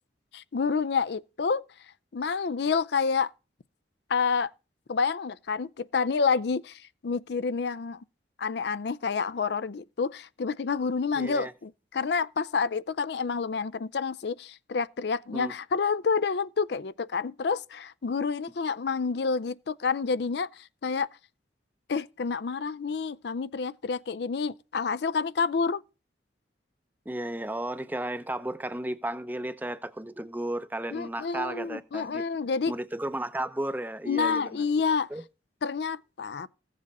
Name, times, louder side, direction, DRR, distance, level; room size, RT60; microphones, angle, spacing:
voice 1, 0.3-1.6 2.1-3.3 4.1-4.5 4.9-8.0 8.4-21.1 21.9-25.8 30.9-32.7 34.1-35.1 35.6-36.5, left 5 dB, 60° left, 0.4 m, -28 dB
voice 2, 11.2-11.5 15.3-15.5 27.1-32.2 32.7-34.7 35.1-35.2, right 1 dB, 10° right, 0.6 m, -34 dB
15.5 x 7.4 x 4.2 m
head